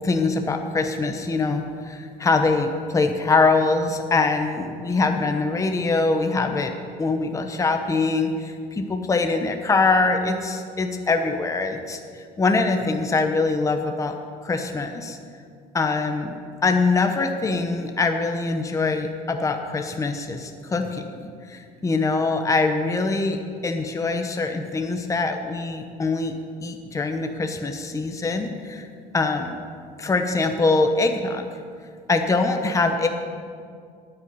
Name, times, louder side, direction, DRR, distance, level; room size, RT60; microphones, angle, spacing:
voice 1, 0.0-6.7 7.0-14.1 14.4-15.2 15.7-16.4 16.6-26.3 26.6-28.9 29.1-29.6 30.0-31.5 32.1-33.1, left 3 dB, 20° left, 5 dB, 1.0 m, -23 dB
9.5 x 9.4 x 9.7 m, 2.2 s
cardioid pair, 120°, 17 cm